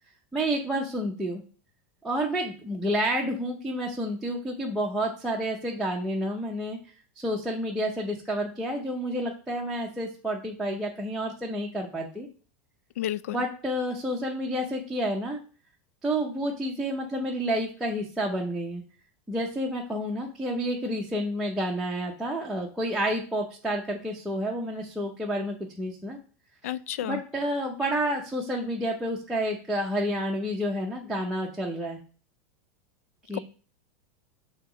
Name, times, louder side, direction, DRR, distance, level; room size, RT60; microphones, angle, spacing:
voice 1, 0.3-1.4 2.0-6.8 7.2-12.3 13.3-15.4 16.0-18.8 19.3-26.2 26.6-26.7 27.0-32.0 33.3-33.4, equal, ahead, 0.6 m, -29 dB
voice 2, 13.0-13.4 26.6-27.2 33.3-33.4, left 13 dB, 90° left, 0.4 m, -31 dB
7.6 x 2.8 x 6.1 m
supercardioid pair, 180°, 8 cm